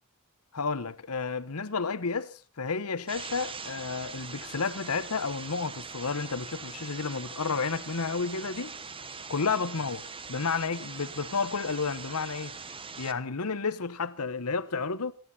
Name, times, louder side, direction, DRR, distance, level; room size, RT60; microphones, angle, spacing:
voice 1, 0.5-8.8 9.3-10.0 10.3-12.6 13.0-15.1, left 4 dB, 85° left, 1.1 m, -31 dB
sound 1, 3.1-13.1, right 5 dB, 25° right, 1.1 m, -42 dB
26.5 x 11.0 x 4.2 m
head